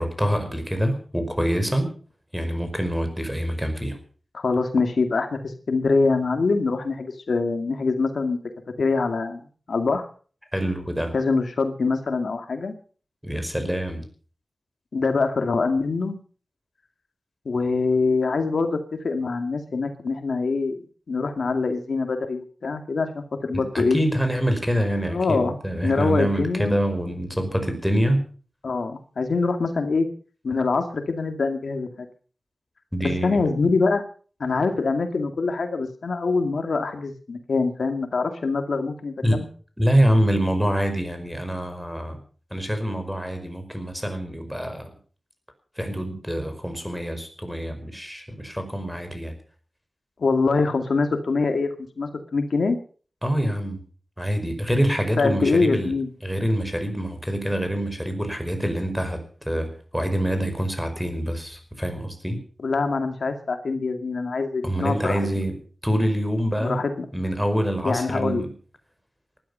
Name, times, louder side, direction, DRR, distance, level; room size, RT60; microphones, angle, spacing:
voice 1, 0.0-1.9 2.3-4.0 10.5-11.1 13.2-14.0 23.5-28.2 32.9-33.4 39.2-39.4 39.8-42.2 42.5-44.9 45.8-49.4 53.2-53.8 54.2-55.9 56.2-62.4 64.6-65.5 65.8-66.8 67.1-68.5, equal, ahead, 7 dB, 5.2 m, -25 dB
voice 2, 4.3-8.4 8.8-9.4 9.7-10.1 11.1-12.7 14.9-16.2 17.5-18.8 19.0-20.8 21.1-24.0 25.1-25.6 25.8-26.8 28.6-30.1 30.4-32.1 33.0-34.0 34.4-39.5 50.2-51.7 52.0-52.8 55.2-56.1 62.6-65.2 66.6-67.1 67.8-68.5, left 4 dB, 85° left, 6 dB, 2.2 m, -24 dB
19.0 x 12.5 x 5.6 m, 0.42 s
wide cardioid pair, 90°, 0 cm